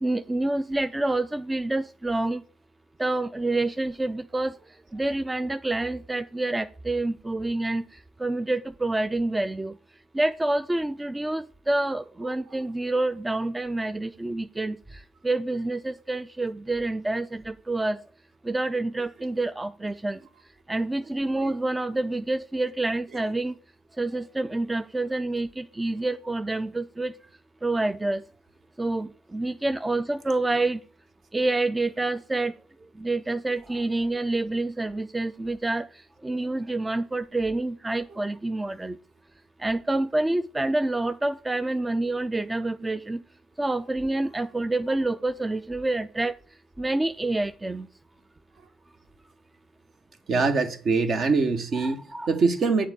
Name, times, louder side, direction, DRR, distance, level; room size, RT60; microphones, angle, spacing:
voice 1, 0.0-2.4 3.0-4.6 4.9-7.8 8.2-9.7 10.1-18.0 18.4-20.2 20.7-23.5 24.0-27.1 27.6-28.2 28.8-30.8 31.3-32.5 33.0-35.9 36.2-39.0 39.6-43.2 43.6-46.3 46.8-47.9 51.7-52.3, right 2 dB, 20° right, 0.4 m, -27 dB
voice 2, 50.3-52.0 52.3-52.9, right 4 dB, 50° right, 1.0 m, -23 dB
8.8 x 3.7 x 6.5 m
figure-of-eight pair, 45°, 0 cm